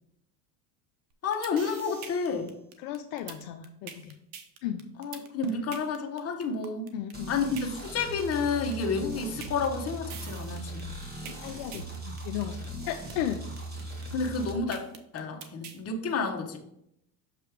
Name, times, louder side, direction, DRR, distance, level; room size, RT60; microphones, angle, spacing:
sound 1, 1.1-15.8, right 7 dB, 75° right, 1.0 m, -44 dB
voice 1, 1.2-2.5 5.0-6.9 7.3-10.9 14.1-14.8 15.1-16.6, left 4 dB, 30° left, 2 dB, 1.1 m, -30 dB
voice 2, 2.8-4.2 4.6-4.8 6.9-7.4 11.3-13.4, left 11 dB, 65° left, 6 dB, 0.6 m, -35 dB
sound 2, 7.1-14.5, right 1 dB, 20° right, 1.4 m, -39 dB
6.7 x 3.2 x 4.7 m, 0.77 s
supercardioid pair, 110°, 48 cm